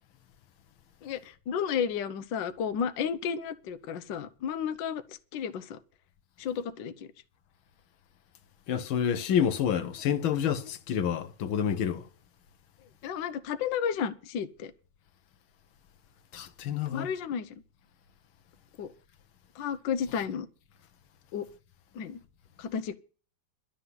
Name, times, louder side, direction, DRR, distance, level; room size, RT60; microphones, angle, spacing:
voice 1, 1.0-5.8 6.4-7.1 13.0-14.7 16.9-17.5 18.8-18.9 19.6-20.5 21.3-21.5 21.9-22.2 22.6-22.9, left 7 dB, 70° left, 1.5 m, -32 dB
voice 2, 8.7-12.1 16.3-17.1, left 8 dB, 85° left, 1.8 m, -28 dB
12.0 x 7.1 x 9.6 m
omnidirectional pair, 2.2 m